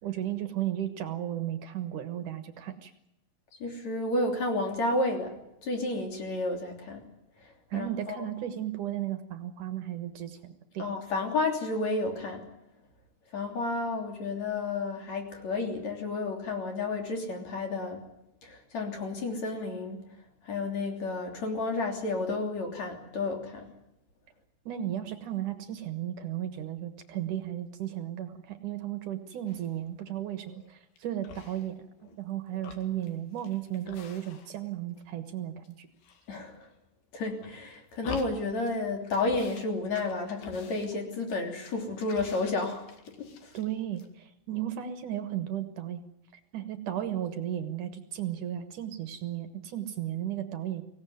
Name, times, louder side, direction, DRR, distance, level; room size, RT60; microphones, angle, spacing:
voice 1, 0.0-2.9 7.7-10.9 24.7-35.9 43.5-46.0 46.5-50.8, right 11 dB, 65° right, 9 dB, 2.7 m, -35 dB
voice 2, 3.6-5.4 5.6-7.0 7.4-8.2 10.8-12.5 13.3-18.1 18.4-20.0 20.4-23.7 36.3-36.7 37.1-42.9 43.2-43.5, left 2 dB, 50° left, 3 dB, 4.4 m, -31 dB
sound 1, 29.5-29.9 30.4-31.0 31.2-32.2 32.5-34.7 35.0-35.7 36.0-36.8 37.3-38.8 39.0-39.7 39.9-43.7 43.9-44.1, left 5 dB, 80° left, 4.0 m, -47 dB
24.5 x 17.5 x 9.5 m, 0.84 s
omnidirectional pair, 4.2 m